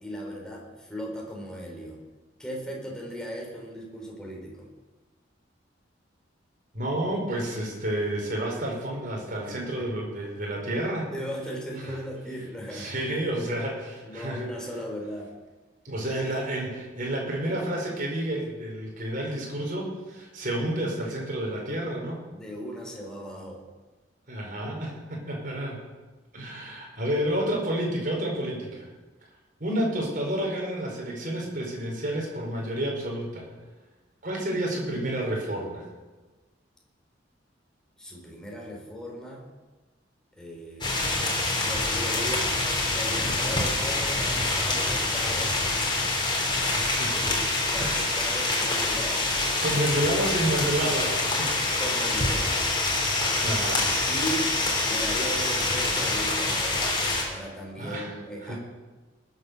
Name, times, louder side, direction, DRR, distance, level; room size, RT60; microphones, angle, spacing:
voice 1, 0.0-2.0 2.4-4.7 9.8-9.9 11.1-12.9 14.0-15.3 22.3-23.6 38.0-39.5 40.3-41.3 41.6-42.5 42.9-46.1 47.7-49.2 49.7-49.9 51.8-52.7 54.1-54.5 54.9-56.8 57.3-58.6, equal, 5° left, -1 dB, 3.5 m, -37 dB
voice 2, 6.7-11.1 11.8-11.9 12.7-14.5 15.8-22.2 24.3-25.8 26.3-28.9 29.6-33.5 34.2-35.9 46.7-47.2 47.7-48.0 49.6-51.7 53.4-53.9 57.8-58.1 58.4-58.6, right 1 dB, 50° right, -1 dB, 4.6 m, -30 dB
sound 1, 40.8-57.2, left 2 dB, 25° left, 3.8 m, -26 dB
20.0 x 8.2 x 6.8 m, 1.2 s
head